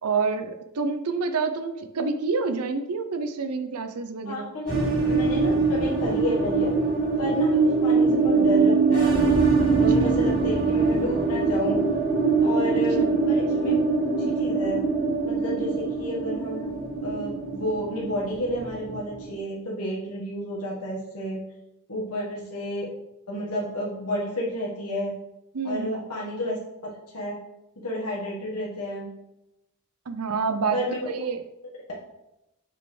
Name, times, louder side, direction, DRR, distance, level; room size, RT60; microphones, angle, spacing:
voice 1, 0.0-4.5 9.7-10.1 12.7-12.8 25.5-25.9 30.1-30.8 31.1-31.4, right 4 dB, 85° right, 8 dB, 0.6 m, -28 dB
voice 2, 4.2-6.7 7.2-9.2 9.6-11.8 12.4-13.8 14.2-14.8 15.2-16.7 17.0-21.4 21.9-22.9 23.3-25.1 25.6-26.6 27.1-27.4 27.8-29.1 30.7-31.0, equal, 90° left, -5 dB, 1.6 m, -31 dB
sound 1, 4.7-19.3, right 4 dB, 40° right, 2.3 m, -23 dB
6.7 x 6.1 x 3.3 m, 0.90 s
head